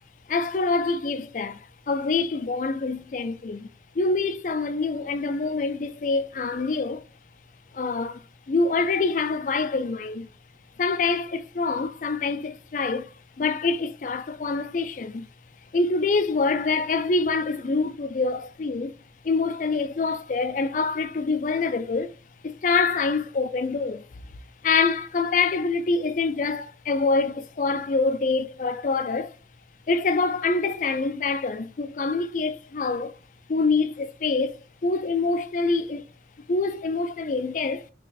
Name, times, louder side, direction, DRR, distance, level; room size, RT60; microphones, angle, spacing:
voice 1, 0.3-3.7 3.9-7.0 7.7-10.3 10.8-15.3 15.7-18.9 19.2-22.1 22.4-24.0 24.6-29.4 29.9-33.1 33.5-36.1 36.5-37.9, left 4 dB, 45° left, 0.4 m, -25 dB
3.1 x 2.8 x 4.1 m
head